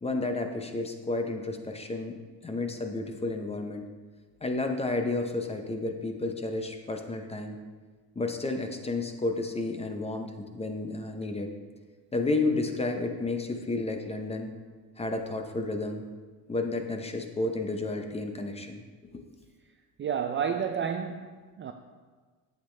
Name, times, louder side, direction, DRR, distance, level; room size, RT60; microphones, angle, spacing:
voice 1, 0.0-2.2 2.4-3.8 4.4-7.6 8.2-11.5 12.1-14.5 15.0-16.0 16.5-18.8 19.1-19.2, left 2 dB, 15° left, 5 dB, 0.7 m, -31 dB
voice 2, 20.0-21.7, right 7 dB, 30° right, 5 dB, 0.4 m, -31 dB
8.6 x 8.2 x 3.3 m, 1.5 s
cardioid pair, 125°, 40 cm